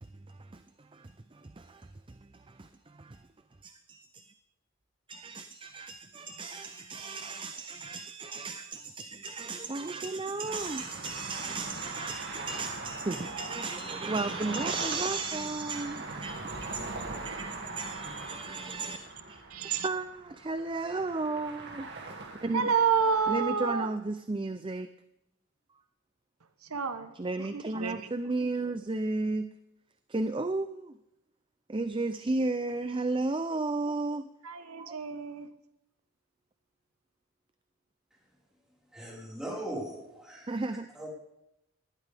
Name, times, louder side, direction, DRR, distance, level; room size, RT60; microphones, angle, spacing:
voice 1, 0.0-3.2 3.6-4.3 5.1-19.0 19.3-19.4 19.8-22.7 23.3-24.9 27.1-29.5 30.1-31.0 31.7-34.3 34.8-35.0 40.5-40.9, right 3 dB, 25° right, 11 dB, 0.5 m, -34 dB
sound 1, 10.5-23.4, right 3 dB, 50° right, 2.3 m, -41 dB
voice 2, 19.5-19.9 22.5-23.9 26.7-27.1 27.4-28.1 34.4-35.5, right 6 dB, 85° right, 10 dB, 1.1 m, -29 dB
voice 3, 38.9-41.1, right 1 dB, 5° right, -4 dB, 4.7 m, -40 dB
19.0 x 12.5 x 3.5 m, 0.87 s
head